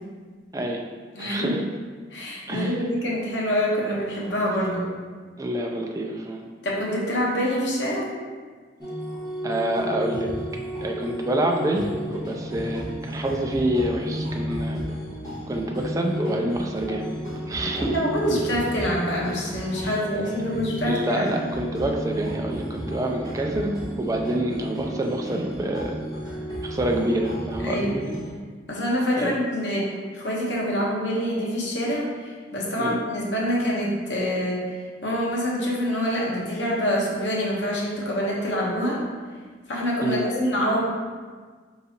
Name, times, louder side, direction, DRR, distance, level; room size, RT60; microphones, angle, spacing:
voice 1, 0.5-0.8 1.2-1.6 2.5-2.8 5.4-6.4 9.4-10.3 10.8-14.8 15.5-17.1 17.5-18.0 19.8-20.0 20.9-26.0 26.6-28.2 29.2-29.4 32.8-33.0 40.0-40.3, right 1 dB, 20° right, 1 dB, 0.4 m, -27 dB
voice 2, 1.1-1.6 2.1-4.9 6.6-8.1 17.7-21.3 27.6-28.1 28.7-29.9 30.1-34.7 35.0-39.0 39.7-40.8, equal, 90° left, -3 dB, 1.0 m, -26 dB
sound 1, 8.8-28.3, equal, 20° left, 1.5 m, -33 dB
4.6 x 3.9 x 2.8 m, 1.5 s
head